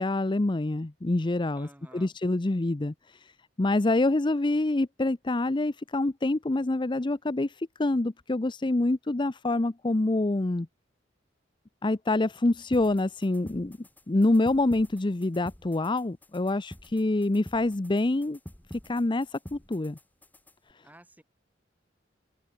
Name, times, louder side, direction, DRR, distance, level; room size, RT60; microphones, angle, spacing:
voice 1, 0.0-3.3 3.6-10.7 11.8-13.8 14.1-18.4 18.7-20.0, left 2 dB, 25° left, 0.6 m, -26 dB
voice 2, 1.5-2.2 20.8-21.2, right 1 dB, 10° right, 4.3 m, -52 dB
sound 1, 12.7-20.7, equal, 10° left, 1.1 m, -49 dB
head